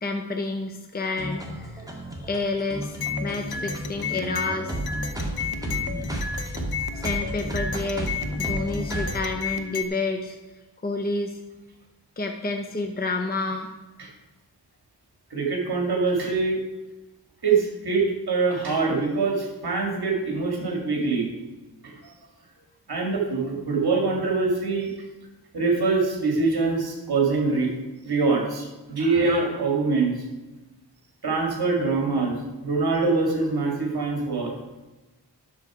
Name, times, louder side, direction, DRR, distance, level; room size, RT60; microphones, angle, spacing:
voice 1, 0.0-1.8 2.2-4.7 6.9-8.1 8.4-10.4 10.8-11.4 12.2-13.7, left 3 dB, 25° left, 4 dB, 0.8 m, -29 dB
sound 1, 1.2-9.2, right 1 dB, 10° right, 1.8 m, -32 dB
sound 2, 3.0-9.8, left 7 dB, 60° left, 0.9 m, -33 dB
voice 2, 15.3-16.6 17.4-21.3 21.8-21.9 22.9-24.9 25.5-27.7 28.1-30.1 31.2-32.3 32.6-34.5, right 4 dB, 65° right, 0 dB, 2.3 m, -24 dB
10.5 x 7.0 x 4.9 m, 1.1 s
wide cardioid pair, 105°, 41 cm